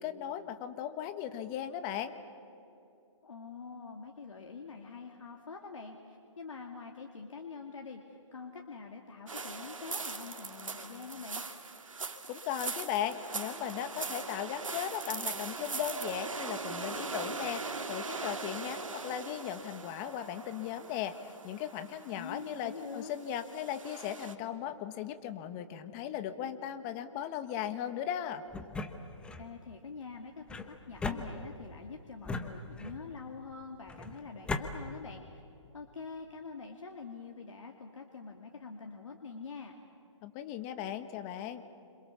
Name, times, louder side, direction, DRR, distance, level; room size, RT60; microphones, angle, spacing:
voice 1, 0.0-2.1 12.3-17.6 17.9-28.4 40.2-41.6, left 10 dB, 25° left, 10 dB, 1.5 m, -37 dB
voice 2, 3.2-11.4 22.2-23.2 29.3-35.4 35.7-39.8, left 5 dB, 75° left, 2 dB, 2.6 m, -45 dB
sound 1, 9.3-24.4, right 4 dB, 90° right, 2.6 m, -41 dB
sound 2, 28.5-29.5 30.5-31.8 32.3-33.1 33.9-34.7, left 3 dB, 5° left, 1.1 m, -38 dB
29.5 x 27.5 x 7.1 m, 2.7 s
hypercardioid pair, 145°, 16 cm